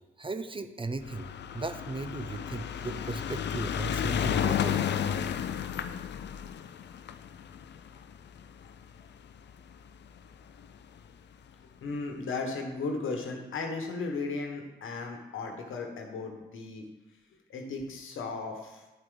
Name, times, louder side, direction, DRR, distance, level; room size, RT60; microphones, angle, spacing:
voice 1, 0.2-1.3 1.5-4.8, right 3 dB, 25° right, 10 dB, 0.6 m, -36 dB
sound 1, 1.0-9.5 10.3-10.4 10.6-10.7 11.0-11.1, left 8 dB, 55° left, 0.5 m, -32 dB
voice 2, 11.8-16.8 17.5-18.8, left 3 dB, 75° left, 3 dB, 1.3 m, -35 dB
9.9 x 4.6 x 3.9 m, 1.1 s
supercardioid pair, 50°, 21 cm